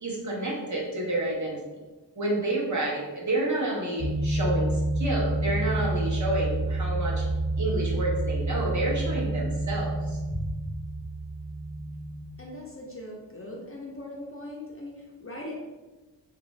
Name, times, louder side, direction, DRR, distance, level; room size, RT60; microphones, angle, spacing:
voice 1, 0.0-1.6 2.2-7.2 7.6-10.5, right 1 dB, 40° right, -4 dB, 0.9 m, -29 dB
sound 1, 4.0-12.3, right 2 dB, 25° right, 1.2 m, -29 dB
voice 2, 12.4-15.5, left 1 dB, 30° left, -2 dB, 0.5 m, -40 dB
3.1 x 2.5 x 3.1 m, 1.2 s
wide cardioid pair, 80°, 43 cm